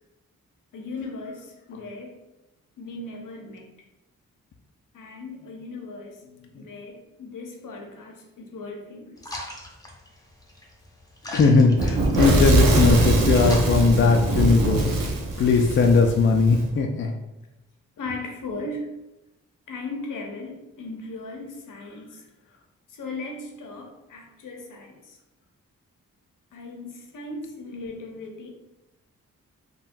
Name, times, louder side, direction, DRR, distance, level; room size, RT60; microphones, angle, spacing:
voice 1, 0.7-2.2 2.8-3.7 4.9-6.2 6.6-9.2 18.0-18.9 19.7-22.3 22.9-25.2 26.5-28.5, left 2 dB, 65° left, 2 dB, 0.7 m, -37 dB
sound 1, 9.2-14.6, left 1 dB, 10° left, 0.8 m, -41 dB
voice 2, 11.3-15.0 15.4-17.1, left 4 dB, 35° left, 3 dB, 0.4 m, -19 dB
Fire / Explosion, 11.8-16.6, right 2 dB, 75° right, 0.7 m, -22 dB
3.5 x 2.2 x 2.5 m, 0.96 s
supercardioid pair, 40°, 34 cm